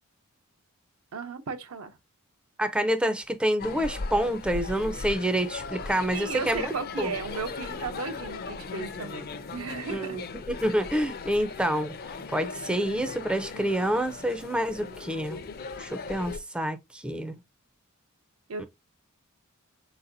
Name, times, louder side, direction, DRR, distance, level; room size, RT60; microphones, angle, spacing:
voice 1, 1.1-2.0 6.1-10.2 14.8-15.1 18.5-18.7, right 4 dB, 75° right, 0.7 m, -35 dB
voice 2, 2.6-6.7 7.0-7.1 9.9-11.9 12.3-15.4 15.8-17.4 18.6-18.7, right 1 dB, 5° right, 0.4 m, -28 dB
sound 1, 3.6-16.4, left 4 dB, 45° left, 0.5 m, -38 dB
4.5 x 4.0 x 2.6 m
head